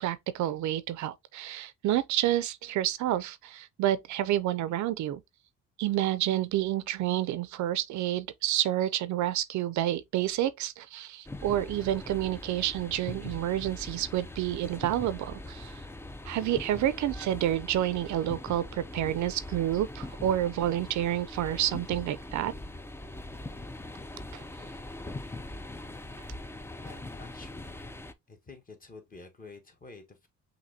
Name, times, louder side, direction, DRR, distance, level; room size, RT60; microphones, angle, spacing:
voice 1, 0.0-5.2 5.8-15.8 16.3-22.5, right 12 dB, 70° right, 0.5 m, -29 dB
sound 1, 11.3-28.1, left 2 dB, 10° left, 0.4 m, -42 dB
voice 2, 26.7-27.9 28.3-30.3, left 3 dB, 30° left, 1.3 m, -50 dB
5.8 x 2.7 x 2.7 m
cardioid pair, 90°, 30 cm